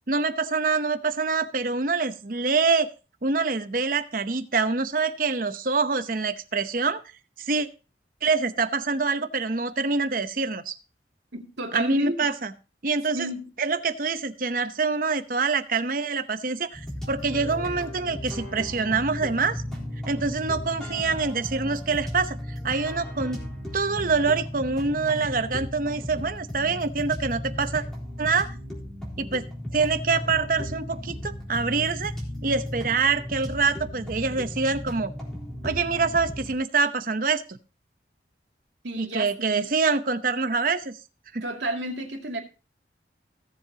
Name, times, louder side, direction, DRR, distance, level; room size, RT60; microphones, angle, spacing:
voice 1, 0.1-2.9 3.2-7.0 7.4-7.7 8.2-10.8 11.7-12.5 12.8-13.3 13.6-19.6 20.1-22.4 22.6-23.4 23.7-27.8 28.2-28.5 29.2-29.4 29.7-32.1 32.4-35.1 35.6-37.6 39.0-40.9 41.3-41.4, right 4 dB, 50° right, 10 dB, 0.8 m, -25 dB
voice 2, 11.3-12.2 13.1-13.5 38.8-39.7 41.4-42.4, right 1 dB, 90° right, 1 dB, 2.6 m, -31 dB
sound 1, 16.7-36.5, equal, 5° left, 3.8 m, -35 dB
17.5 x 7.5 x 2.9 m, 0.33 s
head